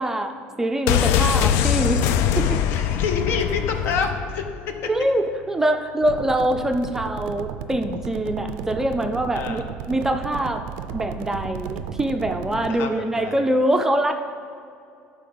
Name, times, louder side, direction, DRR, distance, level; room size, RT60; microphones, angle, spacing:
voice 1, 0.0-2.1 2.4-2.6 4.9-10.6 10.9-14.1, right 1 dB, 10° right, 5 dB, 0.4 m, -24 dB
sound 1, 0.9-4.6 4.9-5.0, left 9 dB, 75° left, 0.4 m, -22 dB
voice 2, 2.7-4.4 9.3-9.6 12.7-13.5, left 5 dB, 60° left, 6 dB, 0.8 m, -27 dB
sound 2, 6.0-12.7, right 9 dB, 90° right, 0.4 m, -34 dB
11.0 x 4.6 x 3.8 m, 2.4 s
cardioid pair, 140°, 4 cm